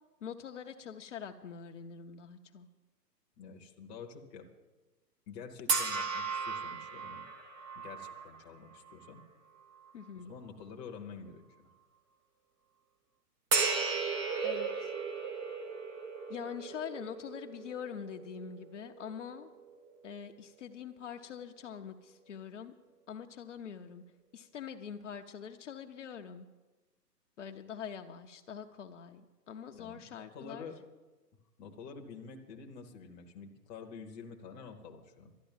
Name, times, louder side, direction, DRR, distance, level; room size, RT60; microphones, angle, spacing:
voice 1, 0.2-2.7 9.9-10.3 14.4-14.9 16.3-19.5 20.0-22.7 23.1-24.0 24.3-26.5 27.4-30.7, left 7 dB, 45° left, 4 dB, 0.8 m, -44 dB
voice 2, 3.4-4.5 5.3-7.2 7.7-9.2 10.1-11.4 29.7-30.8 31.6-35.3, left 5 dB, 15° left, 1 dB, 0.9 m, -48 dB
sound 1, 5.7-9.2 9.8-9.9 13.5-19.9, right 4 dB, 20° right, 0.9 m, -36 dB
12.5 x 9.9 x 7.2 m, 1.2 s
figure-of-eight pair, 130°, 49 cm